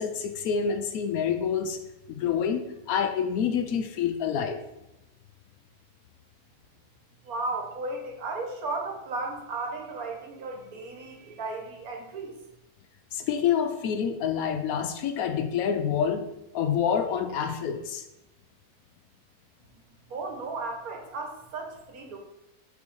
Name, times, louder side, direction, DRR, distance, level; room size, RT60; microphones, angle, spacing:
voice 1, 0.0-1.8 2.1-2.6 2.9-4.6 13.1-16.3 16.5-18.0, left 7 dB, 70° left, 8 dB, 1.0 m, -27 dB
voice 2, 7.2-12.4 20.1-22.2, right 3 dB, 65° right, 2 dB, 1.5 m, -35 dB
5.5 x 4.6 x 4.5 m, 0.92 s
omnidirectional pair, 1.7 m